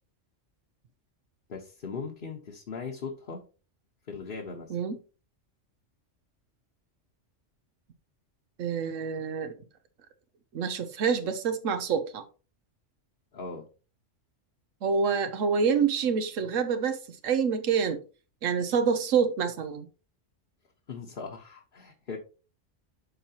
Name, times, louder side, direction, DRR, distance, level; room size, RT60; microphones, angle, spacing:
voice 1, 1.5-3.4 4.1-4.8 13.3-13.7 20.9-22.2, left 5 dB, 45° left, 0 dB, 1.2 m, -39 dB
voice 2, 8.6-9.5 10.5-12.2 14.8-18.0 18.4-19.9, right 6 dB, 90° right, 9 dB, 1.2 m, -27 dB
12.0 x 4.4 x 2.9 m, 0.34 s
omnidirectional pair, 1.3 m